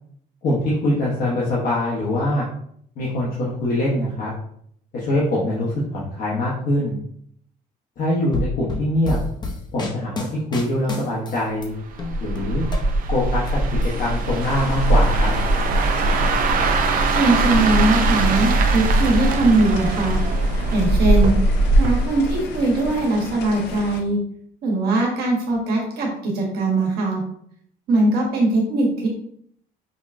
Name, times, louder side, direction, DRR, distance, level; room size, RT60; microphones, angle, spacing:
voice 1, 0.4-2.4 3.0-4.3 4.9-7.0 8.0-9.2 9.7-11.7 12.2-12.6 13.1-15.3, left 1 dB, 60° left, -7 dB, 1.0 m, -23 dB
sound 1, 8.3-11.7 12.0-13.5 13.8-14.7, left 2 dB, 25° left, 0.7 m, -30 dB
sound 2, 11.9-23.1 23.4-23.7, right 2 dB, 55° right, 0.5 m, -20 dB
sound 3, 14.4-24.0, left 4 dB, 90° left, 0.5 m, -36 dB
voice 2, 17.1-20.2 20.7-21.3 21.8-24.2 24.6-27.2 27.9-29.1, right 2 dB, 70° right, -1 dB, 1.4 m, -20 dB
5.2 x 2.3 x 2.5 m, 0.67 s
cardioid pair, 110°, 17 cm